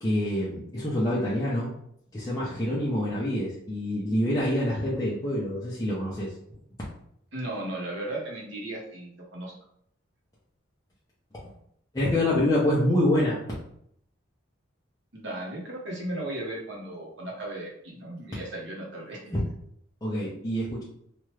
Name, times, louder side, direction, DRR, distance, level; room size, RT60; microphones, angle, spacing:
voice 1, 0.0-1.7 2.1-6.3 11.4-11.5 11.9-13.4 19.3-19.4 20.0-20.8, left 1 dB, 20° left, -7 dB, 0.5 m, -26 dB
voice 2, 7.3-9.5 15.1-19.2, right 1 dB, 65° right, -2 dB, 0.9 m, -36 dB
2.9 x 2.3 x 3.1 m, 0.71 s
head